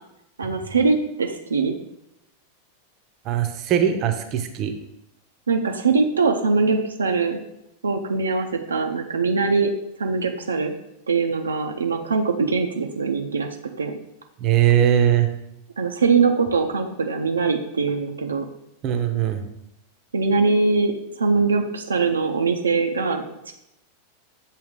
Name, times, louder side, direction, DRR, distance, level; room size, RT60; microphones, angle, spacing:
voice 1, 0.4-1.8 5.5-7.4 7.8-9.7 10.0-10.7 11.1-13.5 13.8-14.0 15.8-18.5 20.1-20.9 21.2-23.5, right 4 dB, 75° right, 3 dB, 0.5 m, -22 dB
voice 2, 3.2-4.7 14.4-15.3 18.8-19.4, right 10 dB, 35° right, 6 dB, 0.7 m, -20 dB
7.3 x 2.8 x 5.0 m, 0.83 s
figure-of-eight pair, 90°, 0 cm